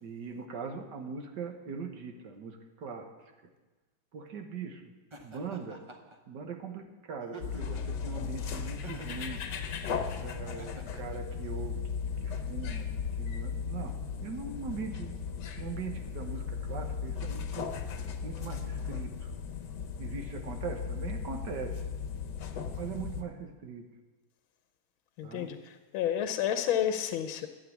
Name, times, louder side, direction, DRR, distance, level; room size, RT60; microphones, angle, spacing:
voice 1, 0.0-3.3 4.1-4.9 5.2-5.9 6.3-9.4 10.2-11.8 12.2-12.9 13.2-15.1 15.6-17.7 18.2-19.3 20.0-21.8 22.8-23.9 25.2-25.5, right 5 dB, 60° right, 5 dB, 1.7 m, -41 dB
Laughter, 5.1-6.2 7.2-7.9 8.8-9.3 10.4-11.2, right 1 dB, 30° right, 0.5 m, -48 dB
sound 1, 7.4-23.2, left 6 dB, 65° left, 1.5 m, -36 dB
voice 2, 25.2-27.5, left 10 dB, 90° left, 8 dB, 1.5 m, -30 dB
13.0 x 8.5 x 7.2 m, 1.2 s
omnidirectional pair, 2.1 m